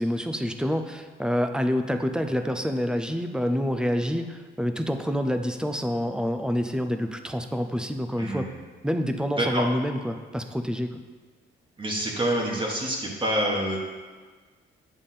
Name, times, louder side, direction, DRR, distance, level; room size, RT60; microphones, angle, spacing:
voice 1, 0.0-8.5 8.8-11.0, equal, 5° right, 7 dB, 0.6 m, -27 dB
voice 2, 8.2-8.6 9.4-9.7 11.8-13.8, right 1 dB, 25° right, -2 dB, 1.4 m, -27 dB
8.5 x 3.6 x 5.7 m, 1.4 s
cardioid pair, 90°, 20 cm